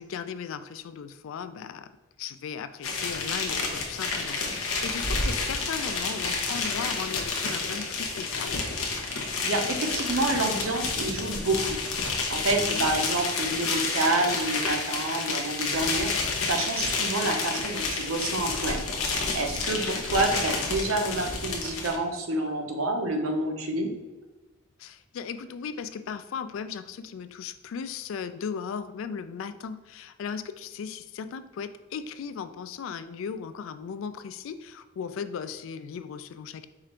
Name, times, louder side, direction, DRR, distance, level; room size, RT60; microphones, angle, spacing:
voice 1, 0.0-1.9 2.2-8.7 12.7-12.9 19.8-20.3 24.8-36.7, left 6 dB, 70° left, 11 dB, 0.3 m, -37 dB
sound 1, 2.8-22.0, left 4 dB, 90° left, 0.8 m, -30 dB
voice 2, 9.1-18.8 19.1-23.9, right 2 dB, 80° right, 3 dB, 0.7 m, -28 dB
4.9 x 2.5 x 4.2 m, 1.2 s
head